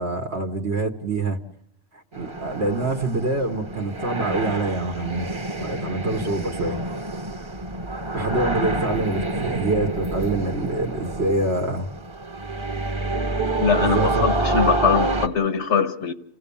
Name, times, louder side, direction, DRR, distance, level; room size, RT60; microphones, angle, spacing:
voice 1, 0.0-1.4 2.2-5.3 5.5-6.8 8.1-11.9 13.8-14.6, right 2 dB, 70° right, 2 dB, 1.6 m, -26 dB
sound 1, 2.1-15.3, right 2 dB, 25° right, 1.1 m, -27 dB
voice 2, 13.6-16.1, left 6 dB, 85° left, 9 dB, 1.6 m, -22 dB
29.0 x 16.0 x 7.1 m, 0.74 s
omnidirectional pair, 1.1 m